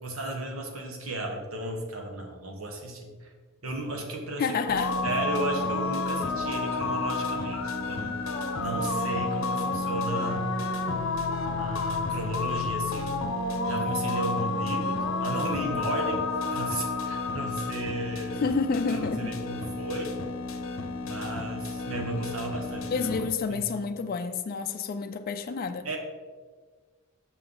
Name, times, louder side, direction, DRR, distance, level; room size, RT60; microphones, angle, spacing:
voice 1, 0.0-3.3 3.6-4.6 5.0-8.2 8.6-10.5 11.6-13.2 13.7-16.2 16.5-18.4 18.9-20.1 21.0-23.2 23.5-23.6 25.8-26.0, right 2 dB, 80° right, 2 dB, 1.3 m, -34 dB
voice 2, 4.4-5.0 18.4-19.3 22.9-25.9, left 5 dB, 45° left, 7 dB, 0.3 m, -29 dB
sound 1, 4.7-23.3, left 3 dB, 70° left, 0.7 m, -30 dB
6.5 x 5.9 x 3.8 m, 1.5 s
head